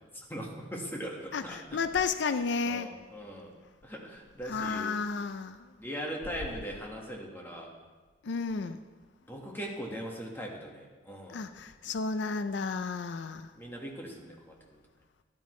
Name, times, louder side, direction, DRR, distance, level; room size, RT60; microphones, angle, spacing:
voice 1, 0.1-1.8 2.6-3.5 3.8-5.0 5.8-7.7 9.2-11.5 13.6-14.6, equal, 10° left, 1.5 m, -40 dB
voice 2, 1.7-2.9 4.5-5.6 8.3-8.8 11.3-13.4, left 5 dB, 80° left, 0.4 m, -32 dB
12.0 x 12.0 x 3.2 m
head